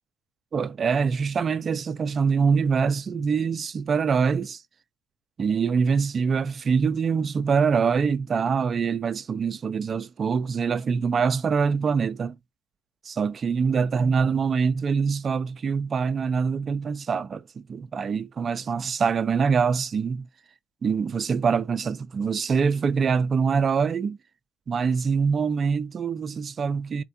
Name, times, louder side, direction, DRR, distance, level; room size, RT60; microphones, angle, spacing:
voice 1, 0.5-4.6 5.4-12.4 13.0-20.3 20.8-24.2 24.7-27.0, right 5 dB, 30° right, 0.4 m, -24 dB
4.4 x 2.4 x 4.1 m
cardioid pair, 130°, 0 cm